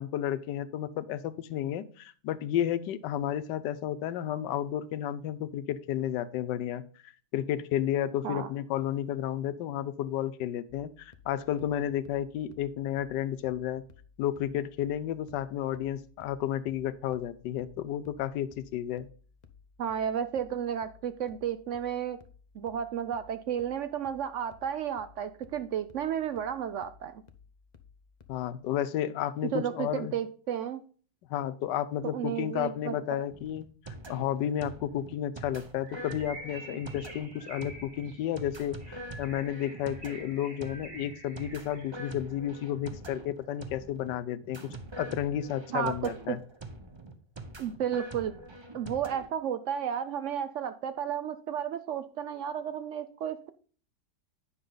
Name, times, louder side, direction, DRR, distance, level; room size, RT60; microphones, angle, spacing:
voice 1, 0.0-13.8 14.2-19.1 28.3-30.1 31.3-44.6 45.0-46.4, left 11 dB, 90° left, 13 dB, 1.3 m, -32 dB
sound 1, 10.7-28.5, left 6 dB, 50° left, 0.5 m, -58 dB
voice 2, 19.8-22.2 22.5-27.2 29.5-30.8 32.1-32.9 45.7-46.4 47.6-48.3 48.7-53.5, right 9 dB, 75° right, 11 dB, 0.7 m, -32 dB
sound 2, 33.3-49.3, right 2 dB, 25° right, 0.6 m, -45 dB
Bird, 35.8-42.1, right 1 dB, 45° right, 2.3 m, -48 dB
9.6 x 6.2 x 3.9 m, 0.42 s
omnidirectional pair, 1.8 m